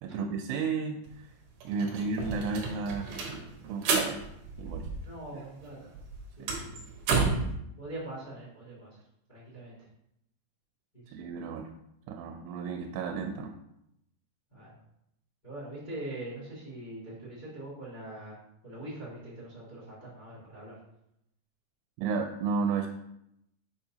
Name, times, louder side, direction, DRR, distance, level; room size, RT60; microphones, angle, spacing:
voice 1, 0.0-1.3 1.7-3.1 3.7-4.2 4.6-4.9 5.3-5.4 6.4-6.5 11.1-11.7 12.1-13.6 22.0-22.9, right 5 dB, 85° right, 4 dB, 2.6 m, -32 dB
sound 1, 1.0-1.1 1.4-5.3 5.6-7.5, right 4 dB, 70° right, 2.1 m, -31 dB
voice 2, 5.0-6.0 6.4-6.7 7.8-9.0 9.3-9.8 10.9-11.2 14.5-14.8 15.4-18.4 18.6-20.7, right 1 dB, 75° left, -6 dB, 0.4 m, -43 dB
7.1 x 5.6 x 2.8 m, 0.80 s
omnidirectional pair, 4.9 m